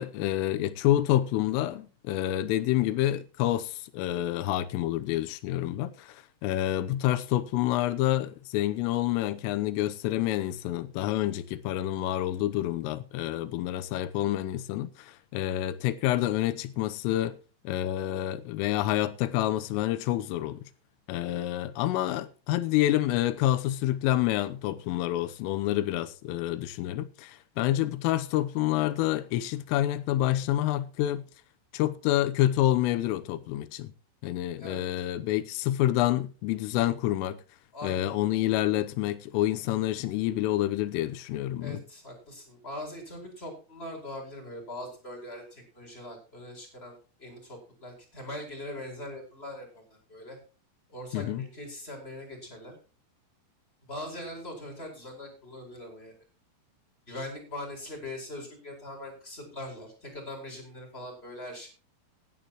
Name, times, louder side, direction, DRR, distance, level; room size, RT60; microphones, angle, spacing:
voice 1, 0.0-17.4 17.6-20.6 21.1-31.2 31.7-33.9 34.2-37.4 37.8-41.8 51.1-51.5, left 14 dB, 90° left, 3.5 m, -28 dB
voice 2, 37.7-38.1 41.6-50.4 50.9-52.7 53.9-56.1 57.1-61.7, left 1 dB, 10° left, 4.6 m, -41 dB
17.0 x 11.5 x 3.0 m
omnidirectional pair, 5.7 m